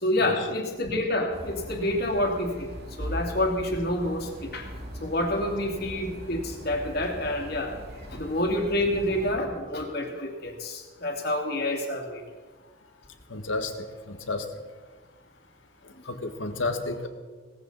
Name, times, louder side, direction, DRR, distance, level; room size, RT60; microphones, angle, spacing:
voice 1, 0.0-2.7 3.0-4.7 5.0-7.7 8.1-12.2, left 1 dB, 50° left, 2 dB, 2.5 m, -28 dB
sound 1, 1.3-9.3, equal, 50° right, 2.2 m, -40 dB
voice 2, 13.3-14.4 16.0-17.1, left 2 dB, 75° left, 7 dB, 1.5 m, -31 dB
18.0 x 15.0 x 4.1 m, 1.4 s
head